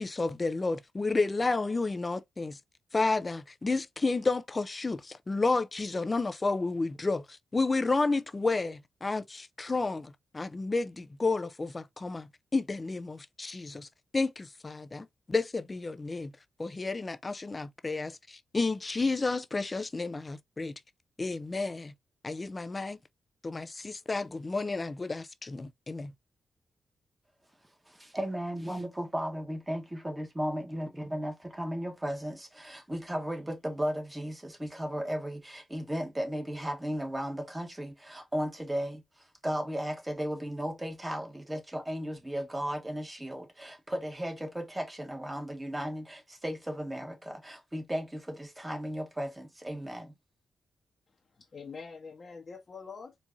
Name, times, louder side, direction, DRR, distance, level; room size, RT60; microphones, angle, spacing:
voice 1, 0.0-2.6 2.9-13.9 14.1-16.3 16.6-20.7 21.2-21.9 22.2-23.0 23.4-26.1, left 3 dB, 30° left, 0.5 m, -31 dB
voice 2, 27.9-39.0 39.4-50.1, equal, 15° right, 1.4 m, -35 dB
voice 3, 51.1-53.1, left 5 dB, 50° left, 1.0 m, -45 dB
4.6 x 2.6 x 2.6 m
cardioid pair, 70°, 0 cm